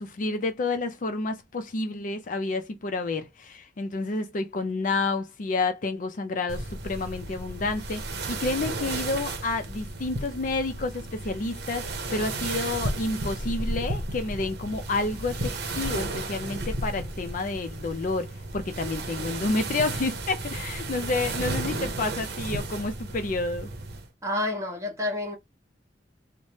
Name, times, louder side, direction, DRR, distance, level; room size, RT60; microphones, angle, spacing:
voice 1, 0.0-23.7, left 3 dB, 50° left, 0.4 m, -30 dB
sound 1, 6.5-24.1, right 2 dB, 65° right, 0.8 m, -33 dB
voice 2, 24.2-25.4, left 1 dB, 20° right, 1.1 m, -29 dB
3.1 x 2.1 x 2.8 m
head